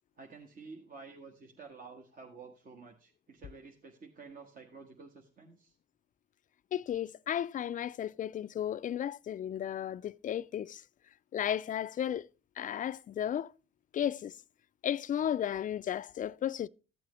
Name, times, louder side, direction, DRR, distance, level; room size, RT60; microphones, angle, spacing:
voice 1, 0.2-5.7, right 4 dB, 45° right, 1.4 m, -51 dB
voice 2, 6.7-10.8 11.3-12.3 12.6-13.5 13.9-14.4 14.8-16.7, left 10 dB, 40° left, 0.4 m, -34 dB
14.0 x 7.5 x 3.1 m
cardioid pair, 90°, 20 cm